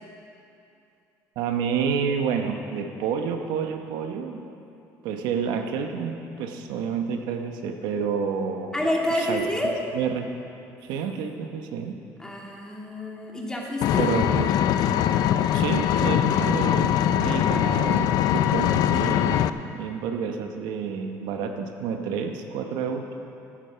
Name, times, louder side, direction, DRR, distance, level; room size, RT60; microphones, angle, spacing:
voice 1, 1.4-4.4 5.0-8.8 9.1-9.4 9.9-10.3 10.8-12.0 14.0-14.6 15.5-19.5 19.7-23.1, right 6 dB, 80° right, 5 dB, 0.9 m, -29 dB
voice 2, 8.7-9.7 12.2-14.1, left 1 dB, 10° left, -1 dB, 2.0 m, -28 dB
Vehicle, 13.8-19.5, left 10 dB, 65° left, 0.4 m, -22 dB
11.5 x 10.0 x 5.6 m, 2.7 s
cardioid pair, 105°, 7 cm